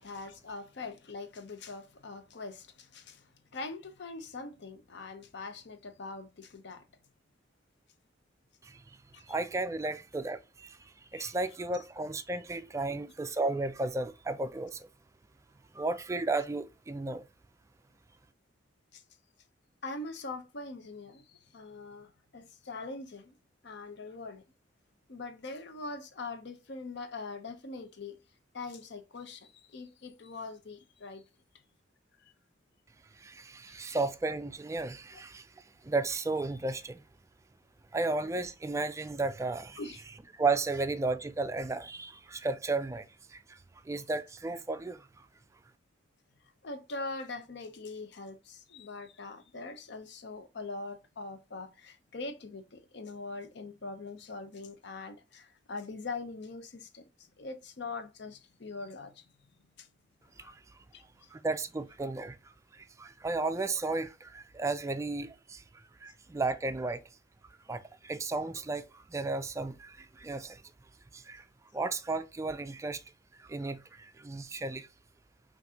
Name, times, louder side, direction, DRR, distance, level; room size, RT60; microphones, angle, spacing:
voice 1, 0.0-3.3 3.5-6.8 9.1-9.2 11.1-11.3 12.9-13.0 18.9-19.0 19.8-23.3 23.6-24.4 25.1-28.2 28.5-31.2 33.7-34.0 35.1-35.2 39.8-40.0 46.6-59.3 59.8-59.9 60.4-60.5 60.9-61.3, left 3 dB, 60° left, 0.7 m, -42 dB
voice 2, 9.3-14.9 15.7-17.3 33.1-37.0 37.9-39.8 40.3-43.6 43.8-45.3 60.4-60.6 61.3-67.0 67.7-70.6 71.1-71.5 71.7-73.0 73.4-74.9, right 3 dB, 15° right, 0.3 m, -34 dB
5.8 x 2.6 x 2.8 m
head